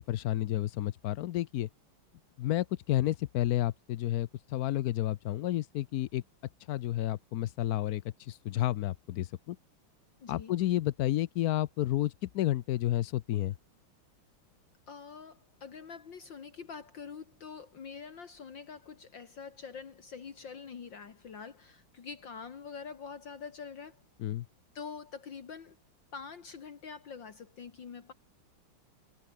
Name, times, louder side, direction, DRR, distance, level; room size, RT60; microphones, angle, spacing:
voice 1, 0.0-1.7 2.4-6.2 6.7-9.6 10.3-13.5 24.2-24.5, left 14 dB, 90° left, 0.8 m, -31 dB
voice 2, 10.2-10.5 14.9-24.0 24.7-25.8 26.1-28.1, left 6 dB, 60° left, 2.6 m, -45 dB
omnidirectional pair, 2.3 m